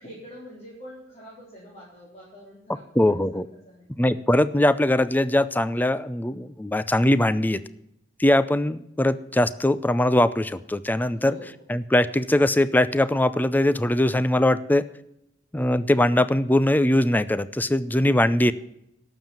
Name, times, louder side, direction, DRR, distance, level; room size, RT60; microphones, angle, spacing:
voice 1, 0.0-3.2 3.6-3.9 11.1-11.7, equal, 35° left, -6 dB, 4.0 m, -44 dB
voice 2, 3.0-3.5 4.0-7.6 8.2-11.3 11.7-14.8 15.5-18.5, left 1 dB, 10° left, 15 dB, 0.5 m, -21 dB
12.0 x 7.3 x 8.9 m, 0.80 s
head